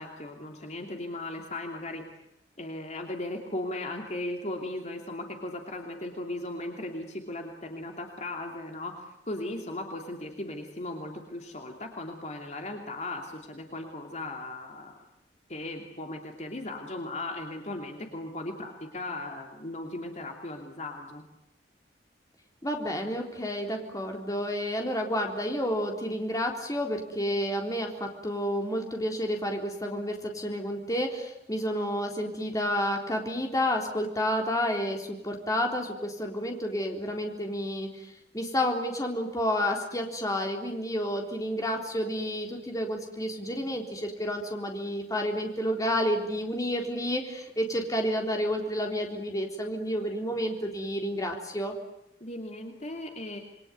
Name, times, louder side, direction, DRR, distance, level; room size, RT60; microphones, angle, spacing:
voice 1, 0.0-2.0 2.6-15.0 15.5-21.2 52.2-53.4, left 2 dB, 40° left, 3 dB, 2.8 m, -37 dB
voice 2, 22.6-51.7, equal, 20° left, 2 dB, 3.9 m, -30 dB
27.5 x 22.5 x 9.3 m, 0.80 s
head